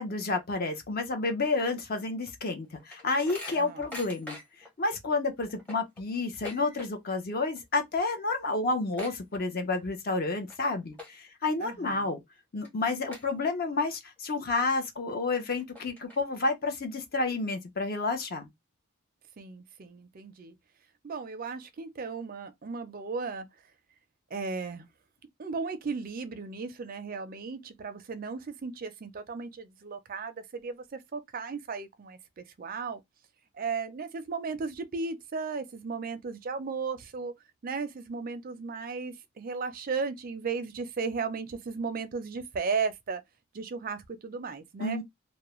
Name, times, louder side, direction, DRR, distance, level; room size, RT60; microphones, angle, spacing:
voice 1, 0.0-4.4 4.8-12.2 12.5-18.5 44.8-45.0, left 3 dB, 45° left, 0.6 m, -30 dB
sound 1, 2.3-4.7 5.1-5.2 5.5-7.2 7.5-7.8 8.1-8.2 8.5-9.9 10.3-10.6 10.9-11.4 11.9-12.0 12.6-12.7 13.1-13.8 14.3-14.4 15.1-15.2 15.6-16.5, left 2 dB, 5° left, 0.7 m, -44 dB
voice 2, 3.5-3.9 11.6-12.1 19.4-20.5 21.0-23.5 24.3-24.8 25.4-33.0 33.5-37.3 37.6-43.2 43.5-45.0, right 4 dB, 40° right, 0.4 m, -35 dB
2.3 x 2.0 x 2.9 m
head